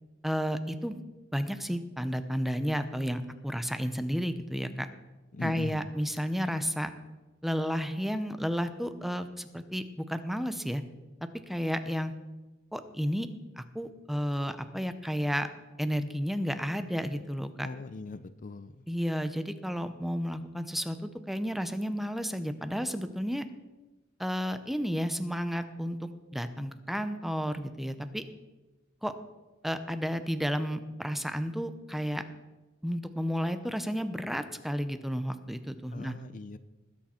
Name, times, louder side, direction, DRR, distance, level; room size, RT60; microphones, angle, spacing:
voice 1, 0.2-1.0 1.3-4.9 5.4-6.9 7.4-10.8 11.2-12.1 12.7-13.3 13.6-15.5 15.8-17.7 18.9-23.4 24.2-28.2 29.0-29.1 29.6-32.2 32.8-36.2, equal, ahead, 10 dB, 0.7 m, -32 dB
voice 2, 5.3-5.9 17.6-18.8 35.9-36.6, left 3 dB, 40° left, 13 dB, 0.5 m, -40 dB
20.5 x 8.6 x 4.3 m, 1.1 s
head